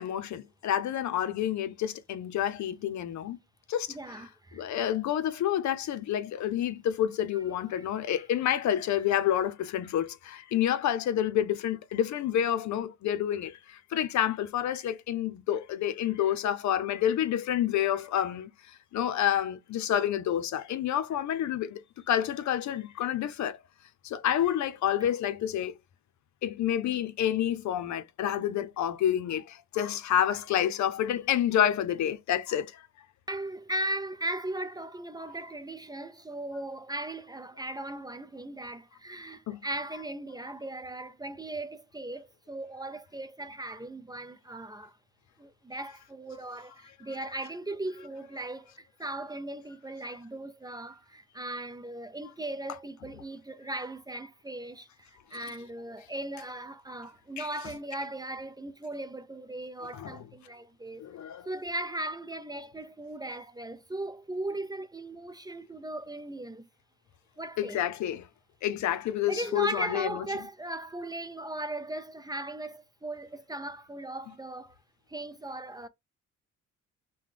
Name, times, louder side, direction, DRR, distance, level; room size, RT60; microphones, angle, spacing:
voice 1, 0.0-3.4 3.7-4.0 4.5-23.6 24.0-25.7 26.4-32.8 39.5-39.6 57.4-57.5 59.9-60.2 61.0-61.5 67.6-68.3 68.6-70.2, left 10 dB, 70° left, 0.7 m, -29 dB
voice 2, 3.9-4.7 7.3-7.4 7.7-8.2 33.3-45.0 45.4-61.1 61.5-66.7 67.4-67.8 69.3-74.8 75.1-75.9, right 1 dB, 15° right, 0.5 m, -38 dB
5.6 x 2.3 x 3.3 m
cardioid pair, 90°, 30 cm